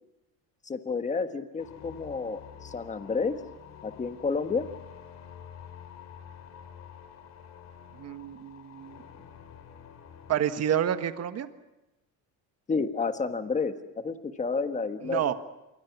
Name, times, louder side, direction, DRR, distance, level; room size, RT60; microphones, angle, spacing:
voice 1, 0.6-3.4 3.8-4.7 12.7-15.3, left 4 dB, 20° left, 8 dB, 1.5 m, -30 dB
sound 1, 1.6-10.4, left 8 dB, 50° left, 3.1 m, -48 dB
voice 2, 8.0-9.0 10.3-11.5 15.0-15.3, right 10 dB, 45° right, 9 dB, 1.6 m, -29 dB
27.0 x 23.5 x 6.0 m, 0.99 s
cardioid pair, 135°, 36 cm